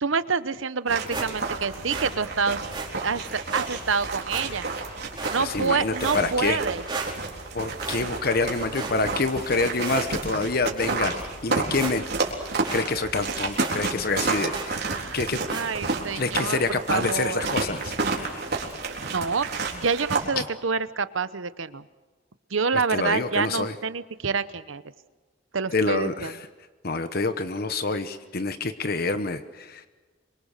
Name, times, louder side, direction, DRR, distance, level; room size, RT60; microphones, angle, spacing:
voice 1, 0.0-2.6 3.0-4.6 5.3-6.8 14.7-15.2 15.5-16.6 16.9-17.5 19.0-19.5 19.7-21.8 22.5-24.8 25.5-26.3, right 5 dB, 85° right, 14 dB, 0.9 m, -27 dB
sound 1, 0.9-20.2, right 3 dB, 55° right, 3.9 m, -31 dB
sound 2, 1.1-1.6 1.9-2.1 2.7-2.9 3.5-3.7 4.3-4.8 5.2-5.7 6.0-6.6 6.9-7.5 7.8-8.4 8.7-9.4 9.8-10.3 10.8-11.0 11.4-11.5 11.7-12.3 12.6-12.9 13.1-13.2 13.6-13.8 14.5-14.8 15.5-15.7, right 4 dB, 25° right, 4.4 m, -35 dB
voice 2, 5.4-6.6 7.5-11.1 11.4-12.0 12.7-14.9 15.1-15.6 16.1-18.5 20.4-20.5 22.9-23.7 25.7-26.4 26.8-29.8, left 3 dB, 50° left, 10 dB, 1.0 m, -27 dB
26.5 x 23.5 x 6.7 m, 1.3 s
head